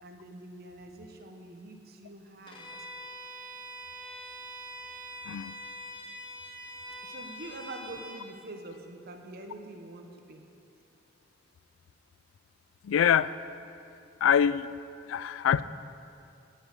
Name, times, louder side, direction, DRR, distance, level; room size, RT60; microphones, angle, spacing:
voice 1, 0.0-2.9 7.0-10.5, right 2 dB, 55° right, 4 dB, 1.1 m, -45 dB
Bowed string instrument, 2.5-8.2, equal, 25° left, 1.4 m, -44 dB
voice 2, 5.2-5.6 12.8-13.3 14.2-14.7 15.1-15.6, left 8 dB, 85° left, 17 dB, 0.3 m, -24 dB
11.0 x 6.4 x 8.1 m, 2.6 s
head